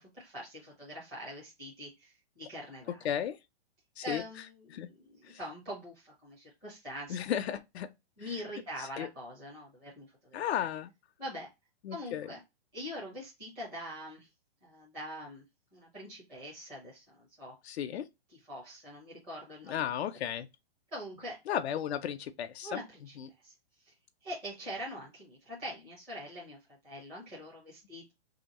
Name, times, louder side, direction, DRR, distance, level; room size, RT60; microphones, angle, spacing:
voice 1, 0.0-3.0 4.0-7.3 8.2-10.7 11.2-11.5 11.9-12.4 12.7-14.3 14.6-15.4 15.7-17.6 18.3-19.9 20.9-21.4 22.6-23.1 23.4-23.5 23.8-23.9 24.2-26.6 26.8-28.1, equal, 5° right, 0.4 m, -43 dB
voice 2, 3.0-3.4 4.0-4.2 4.7-4.9 5.3-5.4 7.1-7.9 8.8-9.1 10.3-10.9 11.8-12.3 17.6-18.0 19.7-20.5 21.5-22.8 23.2-23.3, left 10 dB, 75° left, 0.5 m, -34 dB
3.0 x 2.8 x 4.0 m
hypercardioid pair, 170°, 32 cm